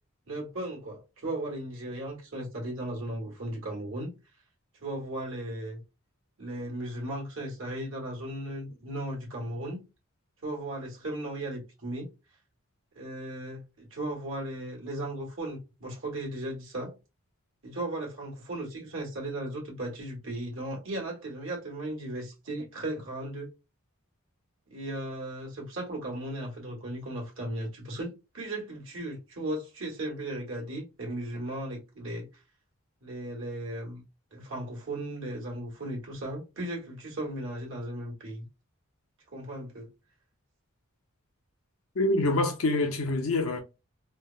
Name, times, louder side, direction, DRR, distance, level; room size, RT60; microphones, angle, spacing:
voice 1, 0.3-4.1 4.8-5.8 6.4-9.8 10.4-12.1 12.9-16.9 17.6-23.5 24.7-32.3 33.0-34.0 34.3-38.5 39.3-39.9, right 1 dB, 65° right, 1.3 m, -36 dB
voice 2, 42.0-43.6, left 2 dB, 80° left, 0.7 m, -26 dB
3.2 x 2.0 x 2.3 m
head